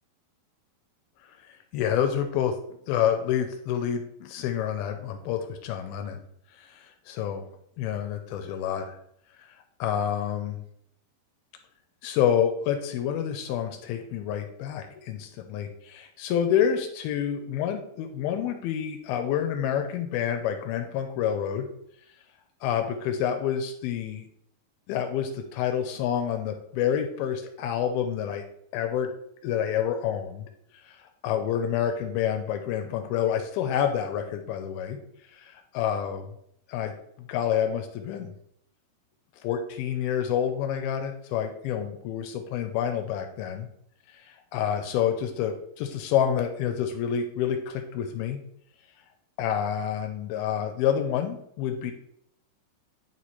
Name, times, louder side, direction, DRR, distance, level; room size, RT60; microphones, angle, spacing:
voice 1, 1.7-2.6 2.9-6.2 6.6-7.5 7.8-9.0 9.8-10.6 12.0-21.7 22.6-24.3 24.9-28.4 28.7-29.1 29.4-30.5 30.9-31.0 31.2-35.0 35.4-36.3 36.7-38.4 39.4-43.7 44.3-48.4 49.4-51.9, left 9 dB, 85° left, 6 dB, 2.4 m, -28 dB
9.1 x 3.1 x 4.2 m, 0.71 s
omnidirectional pair, 4.5 m